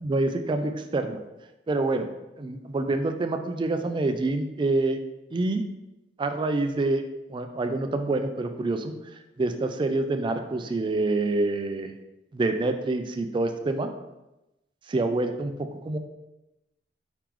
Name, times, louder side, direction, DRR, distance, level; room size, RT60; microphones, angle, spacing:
voice 1, 0.0-1.2 1.7-2.1 2.4-5.0 5.3-5.6 6.2-7.0 7.3-8.9 9.4-11.9 12.3-13.9 14.9-15.5 15.8-16.0, right 2 dB, 25° right, 7 dB, 0.3 m, -26 dB
4.8 x 3.7 x 3.0 m, 0.96 s
head